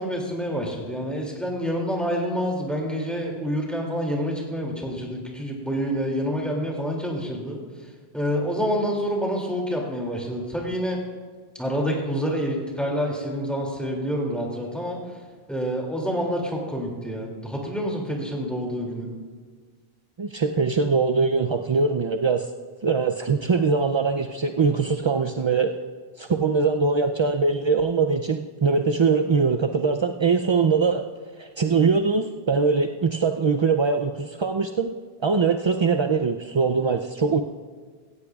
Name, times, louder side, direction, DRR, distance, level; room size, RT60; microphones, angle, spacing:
voice 1, 0.0-7.6 8.1-11.0 11.6-15.0 15.5-19.1, equal, ahead, -2 dB, 2.5 m, -27 dB
voice 2, 20.2-22.5 22.8-25.7 26.2-31.0 31.4-34.9 35.2-37.4, right 4 dB, 50° right, 5 dB, 0.3 m, -22 dB
16.5 x 15.0 x 2.4 m, 1.5 s
omnidirectional pair, 1.0 m